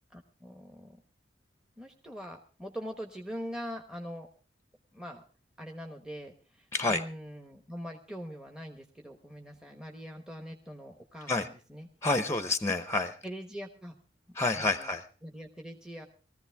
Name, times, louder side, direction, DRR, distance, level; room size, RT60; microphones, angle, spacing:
voice 1, 0.1-1.0 1.8-4.3 4.9-5.2 5.6-11.9 13.2-13.9 14.3-14.9 15.2-16.1, equal, 5° right, 4 dB, 1.1 m, -43 dB
voice 2, 6.7-7.0 11.3-11.5 12.0-13.2 14.4-15.0, left 3 dB, 15° left, 10 dB, 0.8 m, -28 dB
20.0 x 14.5 x 3.5 m, 0.38 s
head